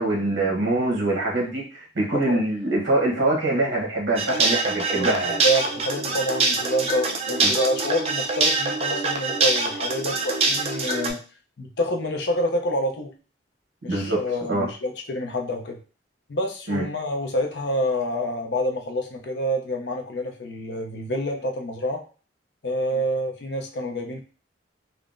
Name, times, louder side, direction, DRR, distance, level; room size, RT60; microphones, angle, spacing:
voice 1, 0.0-5.4 7.4-7.5 13.8-14.2 14.5-14.7 16.7-16.8, right 2 dB, 70° right, -2 dB, 0.9 m, -24 dB
sound 1, 4.2-11.1, right 3 dB, 30° right, 0.3 m, -24 dB
voice 2, 5.4-11.2 11.6-13.1 13.8-15.8 16.3-22.0 22.6-24.2, equal, 60° left, 4 dB, 0.5 m, -27 dB
3.6 x 2.0 x 2.4 m, 0.36 s
head